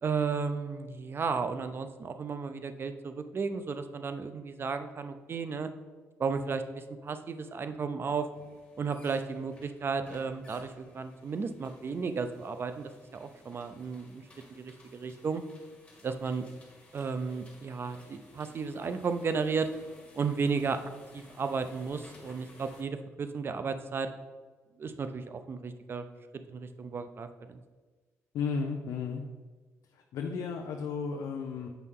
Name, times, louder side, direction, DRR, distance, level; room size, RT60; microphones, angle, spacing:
voice 1, 0.0-5.7 6.2-8.3 8.8-14.2 14.5-15.4 16.0-16.4 16.9-19.7 20.1-20.8 21.1-24.1 24.8-26.1 26.5-27.6, right 5 dB, 40° right, 9 dB, 0.6 m, -34 dB
sound 1, 8.3-22.8, left 1 dB, 15° left, 2.1 m, -57 dB
voice 2, 28.3-29.2 29.9-31.7, left 5 dB, 80° left, 1 dB, 0.6 m, -34 dB
8.1 x 5.5 x 3.7 m, 1.3 s
cardioid pair, 95°, 6 cm